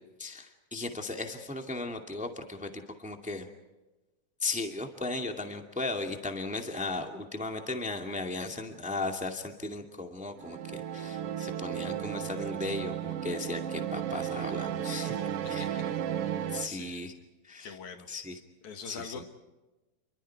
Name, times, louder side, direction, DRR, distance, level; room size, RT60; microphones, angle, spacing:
voice 1, 0.2-3.5 4.4-15.7 16.5-17.1 17.4-17.8 18.1-18.4 18.8-19.2, left 3 dB, 5° right, 4 dB, 1.7 m, -36 dB
sound 1, 10.4-16.7, right 9 dB, 60° right, 2.0 m, -34 dB
voice 2, 16.7-17.3 17.6-18.1 18.6-19.2, left 5 dB, 85° left, 6 dB, 3.5 m, -43 dB
29.0 x 24.0 x 4.7 m, 1.1 s
omnidirectional pair, 3.3 m